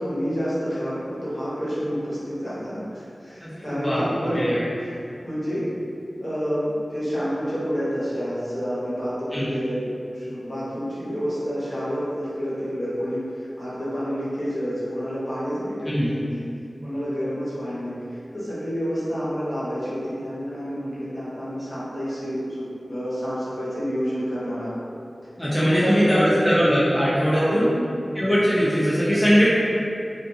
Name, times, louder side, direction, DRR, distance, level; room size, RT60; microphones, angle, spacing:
voice 1, 0.0-4.5 4.8-5.7 6.2-9.8 10.1-16.4 16.8-24.7 25.4-26.3 27.3-27.6, equal, 55° left, -11 dB, 1.0 m, -29 dB
voice 2, 3.4-4.0 4.3-4.6 9.3-9.4 15.9-16.1 25.4-27.7 28.1-29.5, equal, 15° left, -10 dB, 0.5 m, -20 dB
2.4 x 2.3 x 2.7 m, 2.5 s
wide cardioid pair, 75°, 0 cm